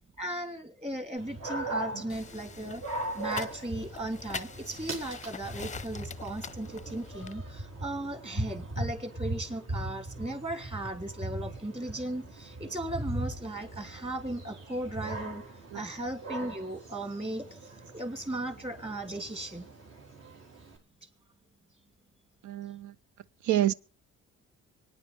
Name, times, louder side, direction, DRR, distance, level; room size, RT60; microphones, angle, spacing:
voice 1, 0.2-2.8 3.1-15.4 15.7-19.7, right 1 dB, 20° right, 2.8 m, -37 dB
Dog, 1.2-20.8, right 1 dB, 60° right, 4.0 m, -40 dB
sound 1, 2.1-7.3, left 5 dB, 25° left, 0.6 m, -43 dB
voice 2, 22.4-22.9 23.4-23.7, right 13 dB, 75° right, 0.7 m, -27 dB
25.0 x 9.7 x 3.5 m
cardioid pair, 90°, 30 cm